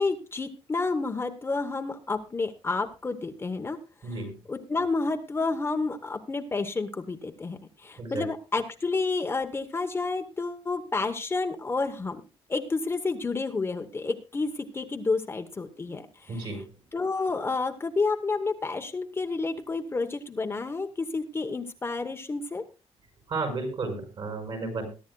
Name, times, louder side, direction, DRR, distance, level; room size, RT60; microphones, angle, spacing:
voice 1, 0.0-3.8 4.5-12.2 12.5-16.1 16.9-22.6, left 3 dB, 20° left, 6 dB, 1.0 m, -30 dB
voice 2, 4.0-4.4 8.0-8.2 16.3-16.7 23.3-24.8, right 3 dB, 50° right, 5 dB, 5.7 m, -33 dB
21.5 x 11.0 x 2.3 m, 0.31 s
cardioid pair, 160°, 11 cm